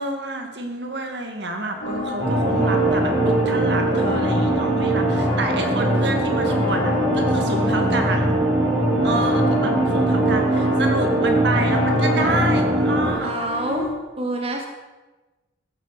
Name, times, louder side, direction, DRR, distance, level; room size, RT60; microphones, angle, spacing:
voice 1, 0.0-8.4 9.0-13.3, right 2 dB, 65° right, 4 dB, 2.3 m, -28 dB
sound 1, 1.8-13.9, left 2 dB, 60° left, 3.7 m, -29 dB
sound 2, 2.2-13.1, right 1 dB, 90° right, 4.2 m, -21 dB
voice 2, 7.5-8.1 13.2-14.7, right 1 dB, 35° right, 2 dB, 1.5 m, -28 dB
14.5 x 8.4 x 7.0 m, 1.2 s
head